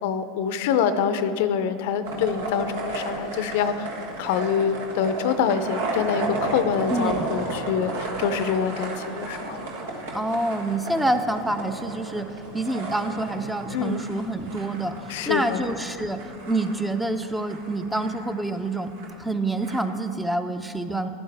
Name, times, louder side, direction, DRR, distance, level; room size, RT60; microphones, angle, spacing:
voice 1, 0.0-3.9 4.2-9.7 13.7-14.0 15.1-15.7, left 7 dB, 70° left, 11 dB, 0.5 m, -25 dB
sound 1, 2.0-19.8, right 2 dB, 80° right, 1.4 m, -34 dB
voice 2, 6.9-7.3 10.1-12.3 12.5-18.9 19.2-21.1, right 2 dB, 5° right, 8 dB, 0.6 m, -27 dB
11.5 x 11.0 x 3.4 m, 2.6 s
hypercardioid pair, 100°, 0 cm